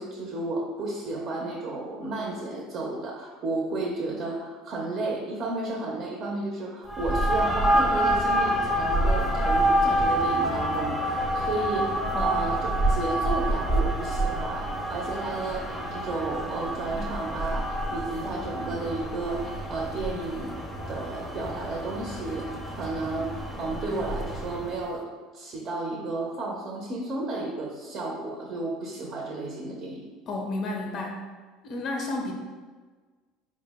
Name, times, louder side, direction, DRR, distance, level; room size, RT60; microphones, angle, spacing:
voice 1, 0.0-20.5 20.9-25.1 25.3-30.0, right 2 dB, 50° right, -1 dB, 0.6 m, -33 dB
sound 1, 6.9-24.8, right 1 dB, 5° left, 0.6 m, -27 dB
voice 2, 30.3-31.2 31.6-32.3, left 2 dB, 45° left, 1 dB, 0.5 m, -31 dB
4.4 x 2.1 x 3.4 m, 1.4 s
supercardioid pair, 105°, 0 cm